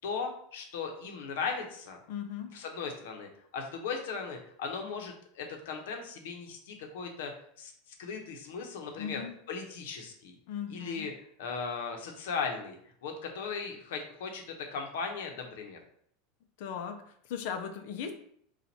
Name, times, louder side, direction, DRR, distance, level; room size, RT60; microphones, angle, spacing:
voice 1, 0.0-2.0 2.5-7.3 7.6-9.2 9.5-10.3 10.7-11.1 11.4-15.8, left 5 dB, 75° left, 3 dB, 0.9 m, -37 dB
voice 2, 2.1-2.6 9.0-9.3 10.5-11.1 16.6-18.1, left 8 dB, 60° left, 6 dB, 0.6 m, -38 dB
4.2 x 2.5 x 4.3 m, 0.65 s
supercardioid pair, 170°, 0 cm